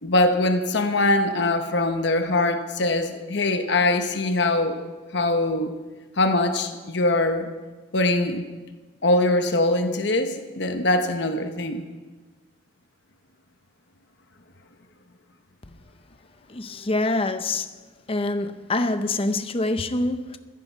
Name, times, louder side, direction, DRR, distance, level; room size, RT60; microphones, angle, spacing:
voice 1, 0.0-4.8 5.1-5.8 6.2-7.5 7.9-8.5 9.0-11.8, left 2 dB, 60° left, 1.1 m, -22 dB
voice 2, 16.5-17.7 18.1-20.4, left 2 dB, 30° left, 0.7 m, -25 dB
16.0 x 14.5 x 4.6 m
head